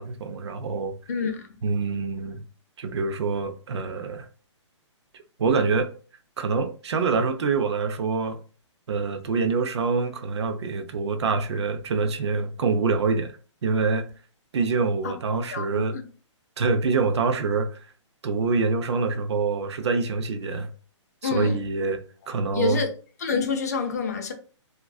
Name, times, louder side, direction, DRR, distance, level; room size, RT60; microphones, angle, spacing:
voice 1, 0.0-1.0 1.6-2.4 2.8-4.3 5.4-5.9 6.4-8.4 8.9-13.3 13.6-14.1 14.5-16.0 16.6-17.8 18.2-20.7 21.2-22.0 22.3-22.8, right 4 dB, 60° right, 0.5 m, -25 dB
voice 2, 1.1-1.5 15.0-15.1 15.5-16.0 21.2-21.6 22.5-22.9 23.2-24.3, left 5 dB, 35° left, 0.3 m, -27 dB
2.4 x 2.2 x 2.3 m
hypercardioid pair, 175°, 16 cm